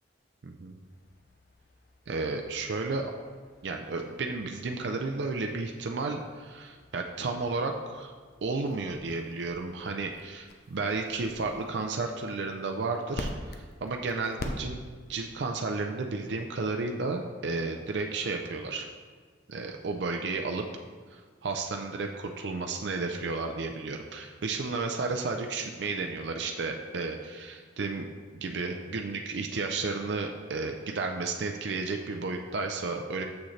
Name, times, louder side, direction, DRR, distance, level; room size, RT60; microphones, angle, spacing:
voice 1, 0.4-0.8 2.1-3.1 3.6-8.1 8.4-14.8 15.1-18.9 19.5-20.6 21.1-28.1 28.3-33.2, right 3 dB, 65° right, 3 dB, 0.5 m, -32 dB
sound 1, 0.8-15.2, left 1 dB, 55° left, 0.6 m, -46 dB
7.0 x 6.3 x 3.2 m, 1.5 s
head